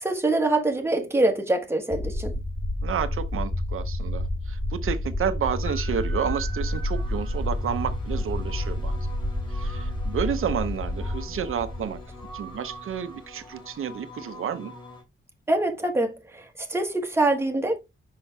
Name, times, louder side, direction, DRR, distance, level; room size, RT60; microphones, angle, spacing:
voice 1, 0.0-2.3 15.5-16.4 16.7-17.8, right 2 dB, 10° right, 1.3 m, -24 dB
sound 1, 1.9-13.4, left 1 dB, 5° left, 0.7 m, -30 dB
voice 2, 2.8-9.0 9.5-12.0 12.3-14.7, right 8 dB, 85° right, 0.7 m, -30 dB
sound 2, 5.6-15.0, equal, 25° left, 2.9 m, -43 dB
5.7 x 5.6 x 3.3 m
wide cardioid pair, 165°, 21 cm